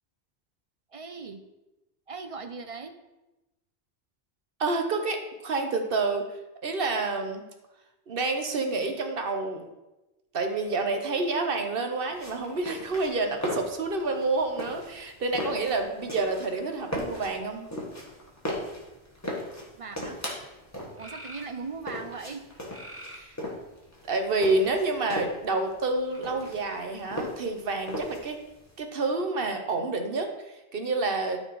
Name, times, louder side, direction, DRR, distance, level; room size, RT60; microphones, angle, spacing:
voice 1, 0.9-1.4 2.1-2.9 19.7-20.2 21.0-22.4, right 4 dB, 40° right, 8 dB, 0.5 m, -39 dB
voice 2, 4.6-6.2 6.6-7.4 8.1-9.7 10.3-17.7 23.1-23.4 24.0-28.4 28.8-31.4, right 3 dB, 60° right, 5 dB, 1.1 m, -28 dB
sound 1, 12.1-28.7, left 1 dB, 15° left, 1.7 m, -37 dB
sound 2, 21.0-21.5 22.7-23.3 24.1-24.8 26.1-26.2, right 1 dB, 15° right, 1.1 m, -45 dB
12.5 x 4.3 x 4.6 m, 1.0 s
omnidirectional pair, 1.1 m